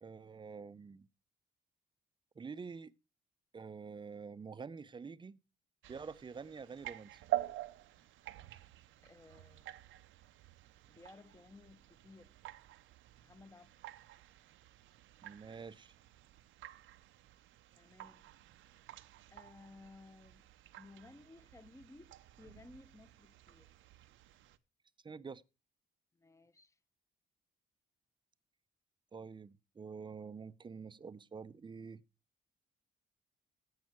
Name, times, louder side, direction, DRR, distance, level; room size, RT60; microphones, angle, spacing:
voice 1, 0.0-1.1 2.4-2.9 3.5-5.4 5.9-7.2 15.2-15.9 25.0-25.4 29.1-32.0, right 5 dB, 25° right, 0.5 m, -47 dB
sound 1, 5.8-24.6, right 15 dB, 80° right, 0.7 m, -48 dB
voice 2, 9.0-9.7 10.9-12.3 13.2-13.8 17.8-18.3 19.3-20.5 20.8-23.7 26.1-26.8, left 3 dB, 15° left, 0.8 m, -58 dB
15.5 x 5.6 x 4.4 m
cardioid pair, 90°, 20 cm